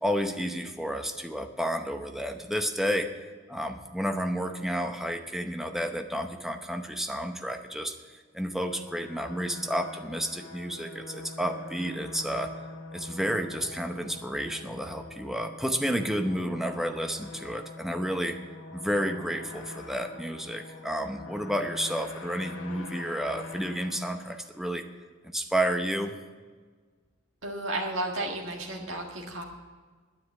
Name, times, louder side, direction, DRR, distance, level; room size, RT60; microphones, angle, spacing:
voice 1, 0.0-3.1 3.5-12.5 12.9-18.4 18.7-24.8 25.3-26.1, equal, ahead, 5 dB, 0.8 m, -31 dB
sound 1, 8.6-24.9, left 2 dB, 80° left, 1.8 m, -44 dB
voice 2, 27.4-29.4, right 1 dB, 70° right, -1 dB, 1.8 m, -33 dB
9.9 x 9.8 x 8.3 m, 1.5 s
head